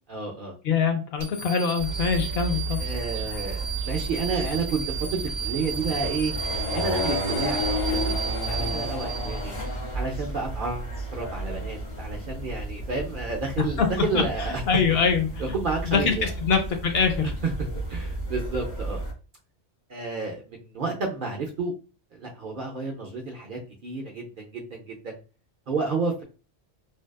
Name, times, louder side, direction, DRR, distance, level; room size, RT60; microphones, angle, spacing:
voice 1, 0.1-0.5 2.8-6.3 6.7-8.1 8.5-9.5 9.9-14.6 15.4-16.3 17.4-17.5 17.9-19.0 19.9-21.7 22.1-25.2 25.7-26.2, right 4 dB, 55° right, 0 dB, 0.6 m, -31 dB
voice 2, 0.6-2.8 13.8-13.9 14.1-14.2 14.7-15.3 15.9-17.3, left 6 dB, 65° left, 4 dB, 0.7 m, -23 dB
sound 1, 1.2-9.7, right 7 dB, 15° right, 0.8 m, -34 dB
sound 2, 1.8-19.1, right 1 dB, 40° left, 0.9 m, -32 dB
2.6 x 2.2 x 2.2 m, 0.33 s
omnidirectional pair, 1.2 m